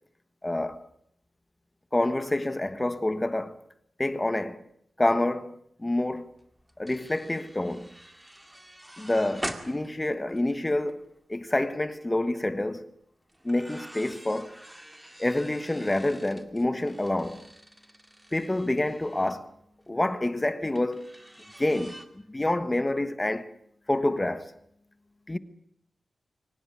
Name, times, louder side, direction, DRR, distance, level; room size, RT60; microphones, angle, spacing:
voice 1, 0.4-0.9 1.9-3.5 4.0-4.6 5.0-6.3 6.8-7.9 9.0-11.0 11.3-12.9 13.4-14.5 15.2-17.4 18.3-19.5 19.9-21.1 21.6-23.5 23.9-24.5 25.3-25.4, left 1 dB, 15° left, 1.2 m, -27 dB
sound 1, 6.3-11.0 11.4-11.7 13.3-19.4 20.7-22.0, right 1 dB, 5° right, 2.1 m, -44 dB
23.0 x 19.0 x 9.6 m
wide cardioid pair, 145°, 0 cm